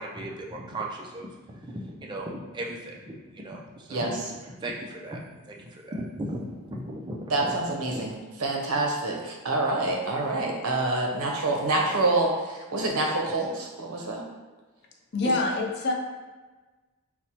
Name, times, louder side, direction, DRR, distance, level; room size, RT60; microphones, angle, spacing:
voice 1, 0.0-7.6 7.9-8.1, right 1 dB, 20° right, -1 dB, 0.3 m, -37 dB
voice 2, 3.9-4.3 7.3-8.1 8.4-14.2, right 2 dB, 85° right, 0 dB, 0.6 m, -27 dB
voice 3, 15.1-15.9, left 2 dB, 50° left, 1 dB, 0.4 m, -25 dB
4.2 x 2.0 x 2.8 m, 1.3 s
head